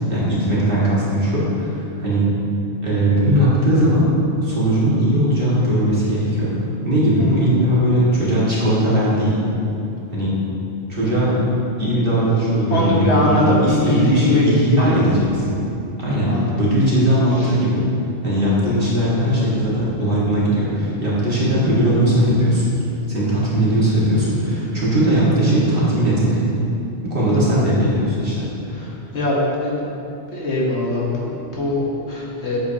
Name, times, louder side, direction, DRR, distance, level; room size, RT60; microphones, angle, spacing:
voice 1, 0.1-2.3 2.8-4.1 4.4-6.5 6.8-9.4 10.1-10.4 10.9-11.4 11.8-15.4 16.0-17.8 18.2-22.7 23.1-26.4 27.0-28.4, right 1 dB, 50° right, -8 dB, 2.1 m, -18 dB
voice 2, 12.7-14.4 14.8-15.0 16.3-16.5 17.4-17.5 27.5-27.6 29.1-29.8 30.3-32.6, left 1 dB, 65° left, -4 dB, 1.5 m, -21 dB
8.5 x 7.8 x 2.8 m, 2.8 s
omnidirectional pair, 1.2 m